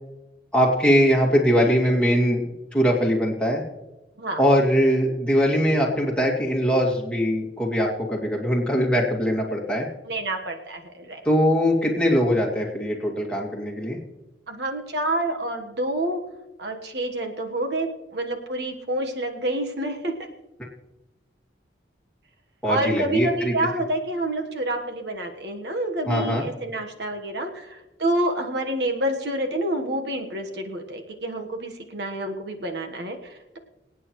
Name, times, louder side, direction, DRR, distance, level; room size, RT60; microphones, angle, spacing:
voice 1, 0.5-2.4 2.7-3.6 4.4-9.9 11.2-14.0 22.6-23.5 26.1-26.4, equal, 5° left, -3 dB, 2.3 m, -21 dB
voice 2, 10.1-11.2 14.5-16.2 16.6-20.1 22.7-33.6, right 1 dB, 65° right, 4 dB, 1.3 m, -28 dB
25.5 x 9.0 x 3.1 m, 1.1 s
head